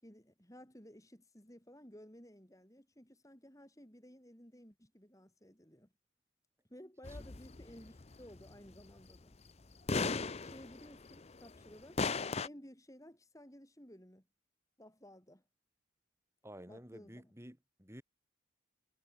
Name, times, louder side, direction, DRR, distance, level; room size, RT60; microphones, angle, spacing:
voice 1, 0.0-5.9 6.7-9.4 9.9-12.0 12.4-14.3 14.8-15.4 16.7-17.3, equal, 15° left, 4.6 m, -56 dB
sound 1, 7.0-8.8 9.1-9.2 9.9-11.7 12.0-12.5, left 4 dB, 30° left, 0.6 m, -36 dB
voice 2, 16.4-18.0, equal, 15° right, 7.4 m, -51 dB
head